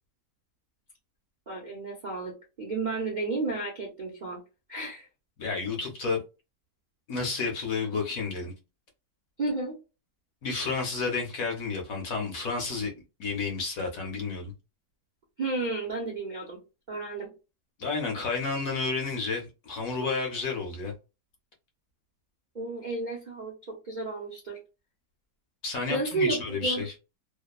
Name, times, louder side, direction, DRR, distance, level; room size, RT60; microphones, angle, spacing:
voice 1, 1.5-4.4 4.7-5.1 9.4-9.8 15.4-16.6 16.9-17.3 22.5-24.6 25.9-26.8, right 3 dB, 50° right, 0.5 m, -32 dB
voice 2, 5.4-6.2 7.1-8.5 10.4-12.9 13.2-14.5 17.8-20.9 25.6-26.9, left 4 dB, 60° left, 1.0 m, -31 dB
2.9 x 2.1 x 2.3 m
omnidirectional pair, 1.9 m